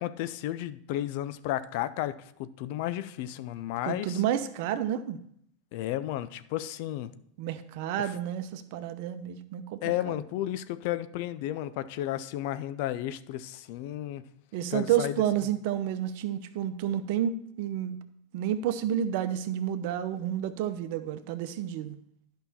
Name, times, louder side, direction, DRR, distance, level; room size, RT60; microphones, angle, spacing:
voice 1, 0.0-4.2 5.7-7.1 9.8-14.2 14.7-15.1, left 13 dB, 60° left, 14 dB, 0.5 m, -33 dB
voice 2, 3.8-5.2 7.4-10.2 14.5-18.0 18.3-22.0, right 10 dB, 60° right, 11 dB, 0.8 m, -30 dB
11.0 x 5.7 x 4.2 m, 0.68 s
hypercardioid pair, 90°, 0 cm